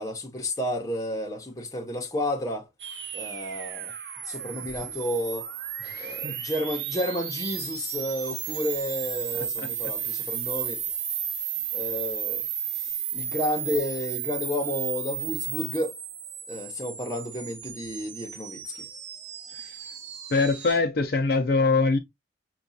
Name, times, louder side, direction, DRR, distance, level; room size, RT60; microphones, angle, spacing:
voice 1, 0.0-2.7 3.1-3.9 4.3-5.5 6.0-10.8 11.7-12.4 12.8-15.9 16.5-18.9, left 1 dB, 20° left, 0.9 m, -31 dB
sound 1, 2.8-20.8, right 9 dB, 75° right, 0.7 m, -34 dB
voice 2, 5.8-6.4 9.3-9.7 10.0-10.3 19.5-19.8 20.3-22.0, left 3 dB, 55° left, 0.5 m, -25 dB
5.9 x 2.4 x 2.6 m
head